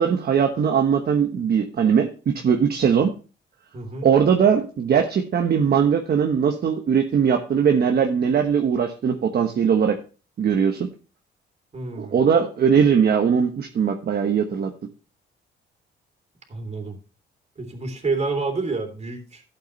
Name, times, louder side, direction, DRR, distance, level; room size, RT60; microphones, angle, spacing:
voice 1, 0.0-2.1 2.3-3.1 4.0-10.0 10.4-10.9 12.0-14.7, right 7 dB, 50° right, 4 dB, 1.2 m, -20 dB
voice 2, 3.7-4.1 11.7-12.2 16.5-17.0 17.6-19.4, right 3 dB, 35° right, 4 dB, 3.3 m, -28 dB
12.0 x 8.3 x 3.2 m, 0.35 s
cardioid pair, 90°, 20 cm